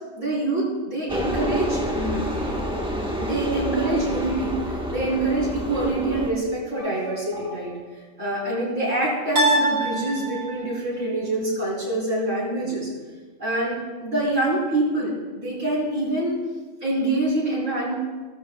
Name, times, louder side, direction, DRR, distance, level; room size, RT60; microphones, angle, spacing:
voice 1, 0.2-2.3 3.2-7.8 8.2-12.9 13.4-16.4 16.8-17.9, right 2 dB, 60° right, -8 dB, 4.5 m, -25 dB
sound 1, 1.1-6.3, equal, 5° right, 1.3 m, -28 dB
sound 2, 6.8-7.5 9.4-10.8, right 1 dB, 45° right, 4.6 m, -25 dB
17.0 x 14.0 x 2.3 m, 1.4 s
omnidirectional pair, 1.4 m